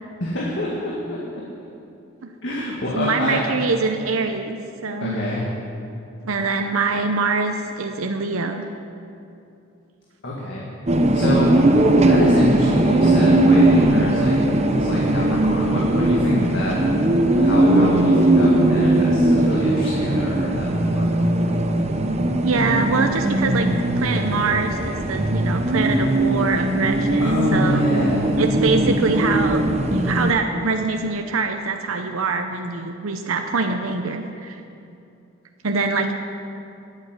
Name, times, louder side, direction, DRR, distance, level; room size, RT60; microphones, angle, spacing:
voice 1, 0.2-1.4 2.4-3.6 5.0-5.5 10.2-10.7 11.1-11.5 12.0-14.4 14.7-16.8 17.3-21.1 27.2-28.3, left 1 dB, 60° left, -4 dB, 2.0 m, -27 dB
voice 2, 2.9-5.2 6.2-8.7 22.4-23.7 24.0-27.8 28.4-34.6 35.6-36.1, right 4 dB, 85° right, 5 dB, 0.8 m, -24 dB
sound 1, 10.9-30.3, right 1 dB, 30° right, 0.9 m, -19 dB
13.0 x 8.3 x 9.8 m, 2.6 s
head